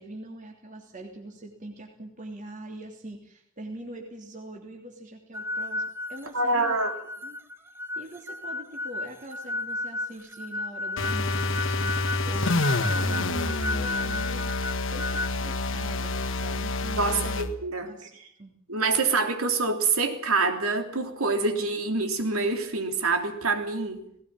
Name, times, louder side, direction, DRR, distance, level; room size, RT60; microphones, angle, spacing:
voice 1, 0.0-5.8 6.1-6.8 7.2-7.4 7.9-14.5 14.9-17.4 17.8-18.1 18.4-18.5, right 1 dB, 35° right, 1 dB, 3.1 m, -42 dB
sound 1, 5.3-15.4, left 2 dB, 10° right, 1.0 m, -34 dB
voice 2, 6.3-6.9 17.0-17.9 18.7-24.0, right 3 dB, 80° right, 6 dB, 3.3 m, -26 dB
sound 2, 11.0-17.5, left 2 dB, 60° left, 1.6 m, -28 dB
19.0 x 18.0 x 9.0 m, 0.69 s
head